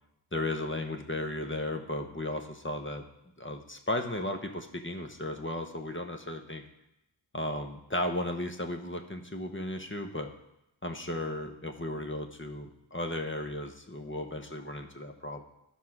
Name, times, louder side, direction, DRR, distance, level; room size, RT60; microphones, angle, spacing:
voice 1, 0.3-3.0 3.4-6.6 7.3-10.3 10.8-15.4, left 1 dB, 25° left, 5 dB, 1.1 m, -35 dB
12.0 x 5.0 x 6.0 m, 0.88 s
wide cardioid pair, 45°, 47 cm